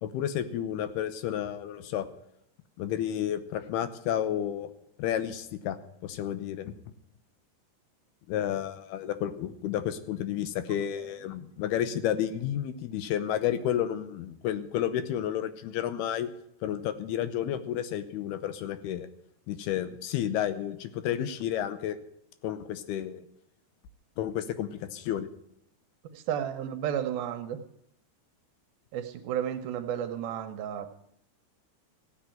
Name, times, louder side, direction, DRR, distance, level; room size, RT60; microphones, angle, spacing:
voice 1, 0.0-2.1 2.8-4.7 5.0-5.8 6.0-6.7 8.3-16.3 16.6-19.1 19.5-22.0 22.4-23.2 24.2-25.3, left 10 dB, 80° left, 12 dB, 2.7 m, -31 dB
voice 2, 26.1-27.6 28.9-30.9, right 9 dB, 75° right, 8 dB, 2.5 m, -32 dB
15.5 x 8.1 x 9.0 m, 0.74 s
omnidirectional pair, 4.8 m